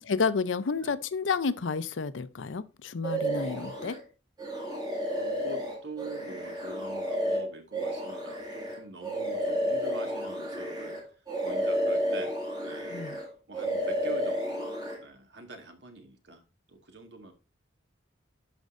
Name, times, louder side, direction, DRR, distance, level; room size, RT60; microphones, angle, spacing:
voice 1, 0.1-4.0 12.9-13.2, left 5 dB, 90° left, 0.6 m, -30 dB
sound 1, 3.0-4.0 4.4-11.0 11.3-13.3 13.5-15.0, equal, 20° right, 2.1 m, -31 dB
voice 2, 5.1-11.0 11.4-12.3 12.6-13.0 13.5-17.3, right 2 dB, 70° right, 1.7 m, -45 dB
11.5 x 5.2 x 2.5 m
head